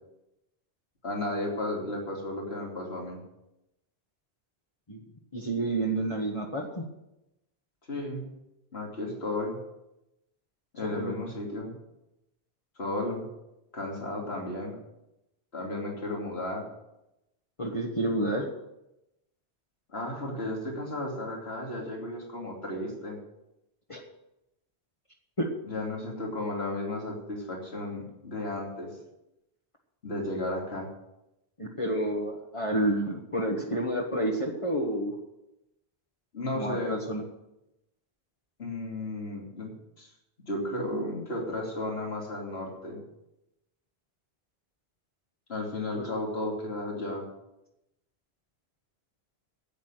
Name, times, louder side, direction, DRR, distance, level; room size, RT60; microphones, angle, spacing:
voice 1, 1.0-3.2 7.9-8.3 8.7-9.6 10.7-11.7 12.8-13.2 13.7-14.8 15.5-16.7 19.9-23.2 25.7-28.9 30.0-30.9 36.3-37.0 38.6-39.7 40.0-40.1 40.5-43.0 45.5-47.3, left 1 dB, 75° left, -1 dB, 3.1 m, -34 dB
voice 2, 5.3-6.9 10.8-11.1 17.6-18.5 23.9-24.0 25.4-25.5 31.6-35.1 36.5-37.2 46.0-46.1, right 1 dB, 30° left, -2 dB, 1.5 m, -29 dB
10.5 x 8.6 x 9.1 m, 0.90 s
omnidirectional pair, 1.1 m